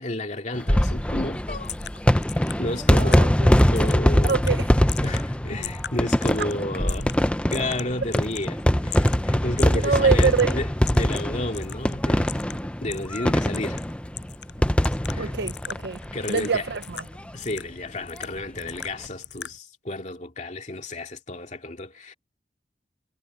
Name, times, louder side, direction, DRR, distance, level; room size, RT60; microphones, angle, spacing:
voice 1, 0.0-1.7 2.4-3.2 3.7-4.4 5.0-10.7 10.9-12.4 12.8-13.8 15.1-15.3 16.1-16.7 17.3-22.1, left 1 dB, 45° left, 2.5 m, -32 dB
sound 1, 0.5-16.6 16.9-17.0 17.2-17.3 18.6-18.8, equal, 5° left, 0.7 m, -22 dB
sound 2, 1.6-19.6, left 9 dB, 75° left, 8.0 m, -41 dB
voice 2, 2.9-3.5 4.2-4.7 6.4-6.5 9.7-10.6 15.2-16.0 16.3-17.0, right 5 dB, 70° right, 0.6 m, -25 dB
head